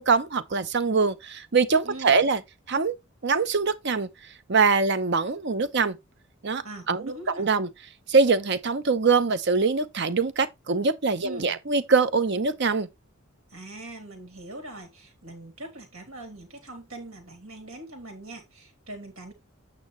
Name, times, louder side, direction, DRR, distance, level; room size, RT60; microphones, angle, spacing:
voice 1, 0.0-2.4 2.7-3.0 3.2-4.1 4.5-6.0 6.4-7.1 7.4-7.7 8.1-12.9, right 4 dB, 55° right, 0.8 m, -23 dB
voice 2, 1.8-2.2 6.6-7.5 11.2-11.6 13.5-19.3, right 2 dB, 85° right, 3.2 m, -42 dB
8.7 x 6.3 x 3.2 m
head